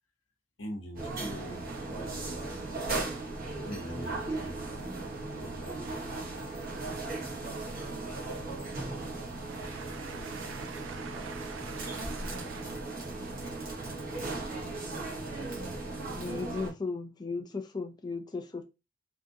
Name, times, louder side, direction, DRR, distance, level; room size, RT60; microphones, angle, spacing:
voice 1, 0.6-2.5 3.7-4.6 5.4-5.7 7.5-7.6, equal, 70° left, 1.0 m, -43 dB
sound 1, 1.0-16.7, right 2 dB, 45° right, 1.2 m, -37 dB
voice 2, 9.5-12.7, right 7 dB, 65° right, 0.5 m, -46 dB
voice 3, 15.9-18.7, left 4 dB, 20° left, 0.3 m, -36 dB
3.6 x 2.5 x 2.6 m
head